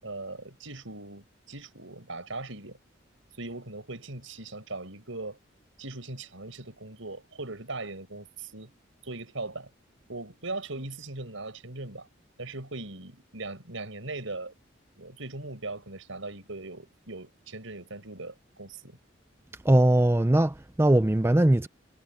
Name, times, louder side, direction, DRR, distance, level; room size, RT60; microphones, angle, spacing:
voice 1, 0.0-2.8 3.4-5.4 5.8-8.7 9.0-9.7 10.1-12.1 12.4-14.5 15.0-19.0, right 2 dB, 85° right, 5.7 m, -39 dB
voice 2, 19.6-21.7, right 1 dB, 10° right, 0.4 m, -21 dB
head